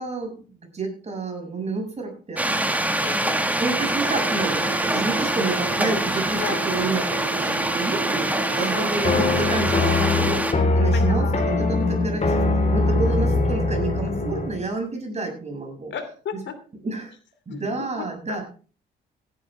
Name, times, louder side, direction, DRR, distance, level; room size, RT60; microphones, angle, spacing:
voice 1, 0.0-2.7 3.6-12.4 12.7-15.9 16.8-17.1 17.5-18.5, right 3 dB, 35° right, 2 dB, 6.9 m, -29 dB
sound 1, 2.4-10.5, right 1 dB, 10° right, 1.8 m, -25 dB
voice 2, 3.0-3.4 6.4-6.6 8.6-8.8 10.9-11.6 13.0-13.2 15.9-16.5 17.5-18.4, left 7 dB, 65° left, 10 dB, 2.9 m, -34 dB
sound 2, 3.8-10.2, right 7 dB, 90° right, 3.0 m, -34 dB
sound 3, 9.0-14.6, left 2 dB, 35° left, 4.0 m, -22 dB
17.5 x 11.0 x 3.5 m, 0.37 s
cardioid pair, 90°, 20 cm